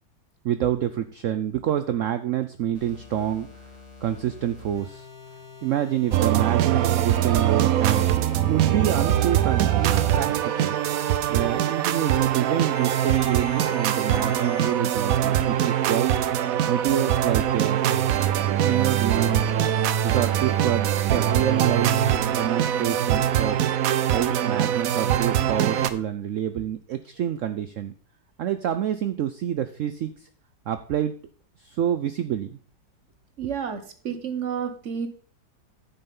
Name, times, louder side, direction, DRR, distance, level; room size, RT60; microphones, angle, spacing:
voice 1, 0.4-3.5 4.0-5.1 5.6-10.8 11.3-16.2 16.7-17.8 18.6-19.5 20.0-22.0 22.4-23.7 24.1-27.9 28.4-30.3 30.7-31.2 31.6-32.6 33.4-33.5, right 11 dB, 90° right, 11 dB, 0.6 m, -27 dB
sound 1, 2.7-14.7, left 1 dB, 45° left, 2.3 m, -43 dB
sound 2, 6.1-25.9, right 11 dB, 65° right, 0.9 m, -23 dB
voice 2, 33.4-35.1, right 7 dB, 50° right, 8 dB, 1.2 m, -30 dB
9.9 x 5.5 x 5.3 m, 0.44 s
omnidirectional pair, 1.9 m